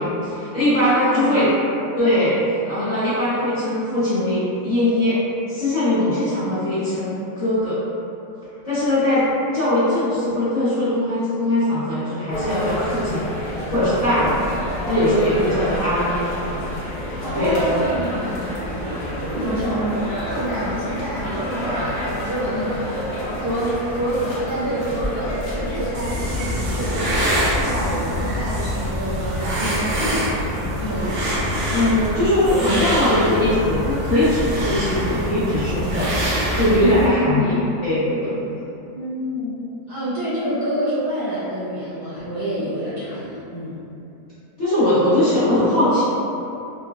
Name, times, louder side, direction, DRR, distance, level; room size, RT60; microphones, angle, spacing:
voice 1, 0.0-1.5 2.0-5.2 5.5-7.8 8.6-9.3 9.5-14.4 14.9-16.3 17.3-17.7 18.3-18.5 31.7-36.1 36.5-37.5 37.8-38.4 44.6-46.0, left 1 dB, 30° left, -18 dB, 1.0 m, -20 dB
voice 2, 0.7-1.5 17.2-18.2 19.2-23.0 23.4-27.0 27.6-31.4 36.7-37.7 38.9-43.8, equal, 45° right, -12 dB, 0.8 m, -27 dB
sound 1, 12.3-25.9, equal, 75° left, 0.4 m, -28 dB
sound 2, 25.9-37.1, equal, 85° right, 1.2 m, -24 dB
3.2 x 2.3 x 2.4 m, 2.7 s
omnidirectional pair, 1.7 m